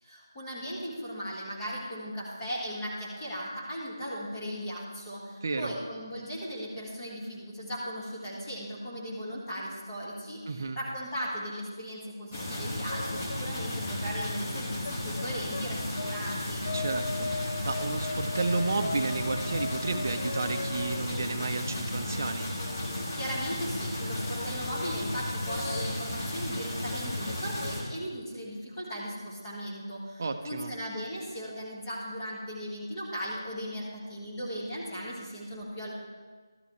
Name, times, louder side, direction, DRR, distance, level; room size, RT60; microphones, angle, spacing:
voice 1, 0.0-16.7 23.1-35.9, equal, 15° left, -7 dB, 1.6 m, -37 dB
voice 2, 5.4-5.7 10.5-10.8 16.7-22.5 30.2-30.7, right 3 dB, 40° right, 6 dB, 0.6 m, -32 dB
sound 1, 12.3-27.8, left 1 dB, 30° left, 1.5 m, -34 dB
sound 2, 12.9-13.5 14.8-16.4 16.6-23.1 23.6-25.1 25.5-26.0 26.5-26.6 26.9-27.8, left 3 dB, 50° left, 0.5 m, -39 dB
12.5 x 8.1 x 3.2 m, 1.4 s
figure-of-eight pair, 160°, 2 cm